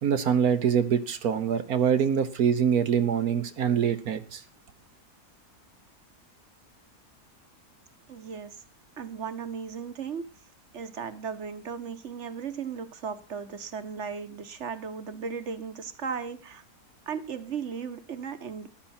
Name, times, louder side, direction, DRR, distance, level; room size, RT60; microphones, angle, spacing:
voice 1, 0.0-4.4, right 8 dB, 70° right, 1.4 m, -24 dB
voice 2, 8.1-8.6 9.0-10.2 10.7-16.6 17.1-18.7, right 6 dB, 50° right, 1.4 m, -36 dB
14.5 x 11.0 x 4.3 m
omnidirectional pair, 1.7 m